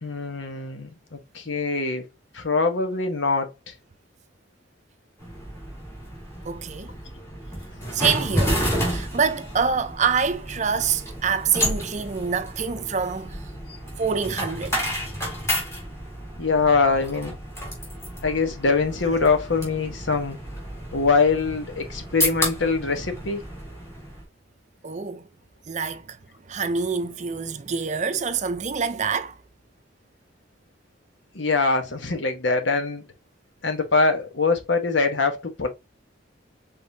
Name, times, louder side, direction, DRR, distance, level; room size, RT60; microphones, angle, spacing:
voice 1, 0.0-2.1 2.3-3.5 16.4-17.4 18.2-20.4 20.9-23.4 31.3-33.1 33.6-35.7, left 4 dB, 70° left, 1.1 m, -23 dB
sound 1, 5.2-24.2, equal, 15° left, 1.9 m, -31 dB
voice 2, 6.4-7.0 7.9-13.5 14.0-14.8 24.8-25.3 25.7-26.2 26.5-29.4, right 6 dB, 35° right, 0.5 m, -26 dB
5.1 x 3.8 x 2.7 m
head